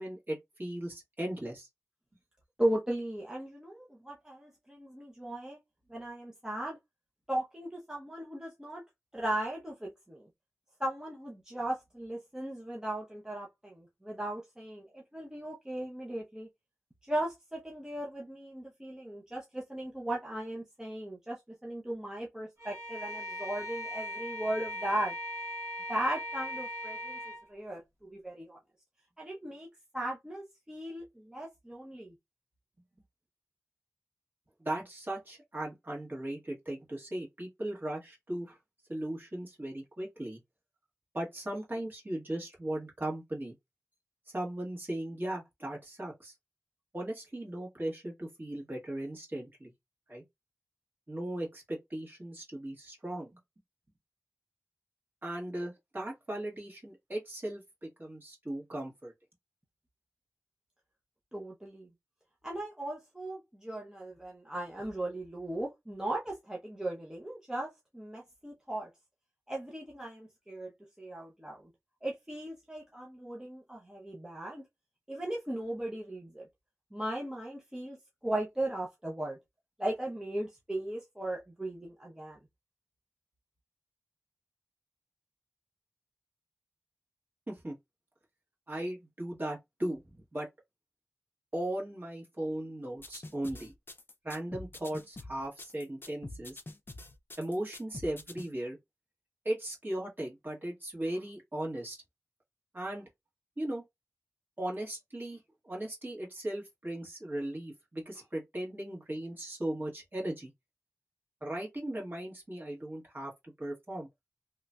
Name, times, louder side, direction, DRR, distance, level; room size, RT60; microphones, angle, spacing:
voice 1, 0.0-1.7 34.6-38.6 38.9-40.4 41.1-43.5 44.3-46.3 46.9-49.7 50.1-50.2 51.1-53.4 55.2-59.1 87.5-87.8 88.7-90.5 91.5-93.7 94.2-96.6 97.4-98.8 99.4-102.0 102.7-103.1 103.6-103.8 104.6-105.4 105.6-110.5 111.4-114.1, right 1 dB, 40° right, 1.6 m, -37 dB
voice 2, 2.6-5.6 5.9-6.8 7.3-8.8 9.1-10.3 10.8-16.5 17.0-25.1 25.9-28.6 29.2-29.7 29.9-32.1 61.3-61.9 62.4-68.9 69.5-70.7 71.0-71.7 72.0-74.6 75.1-76.5 76.9-78.0 78.2-79.4 79.8-82.4, right 1 dB, 10° right, 0.7 m, -37 dB
Bowed string instrument, 22.6-27.5, equal, 65° right, 1.3 m, -39 dB
sound 1, 93.0-98.5, left 2 dB, 40° left, 0.4 m, -45 dB
3.0 x 2.6 x 2.2 m
wide cardioid pair, 80°, 5 cm